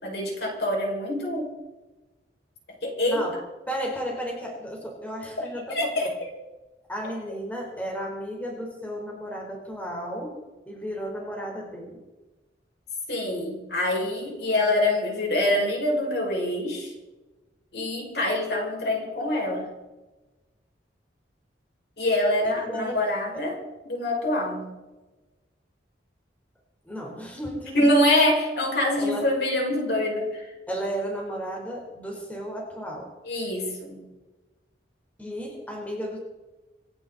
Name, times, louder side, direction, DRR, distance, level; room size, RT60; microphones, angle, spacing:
voice 1, 0.0-1.6 2.8-3.3 5.7-6.1 6.3-6.5 13.1-16.9 17.7-19.7 22.0-23.6 23.8-24.7 27.7-30.5 33.2-34.0, left 1 dB, 60° left, -1 dB, 5.6 m, -25 dB
voice 2, 3.7-6.1 6.9-10.3 10.7-12.0 22.6-23.0 26.8-27.9 29.0-29.3 30.7-33.1 35.2-36.2, equal, 10° left, -1 dB, 3.8 m, -33 dB
26.5 x 11.5 x 4.1 m, 1.1 s
head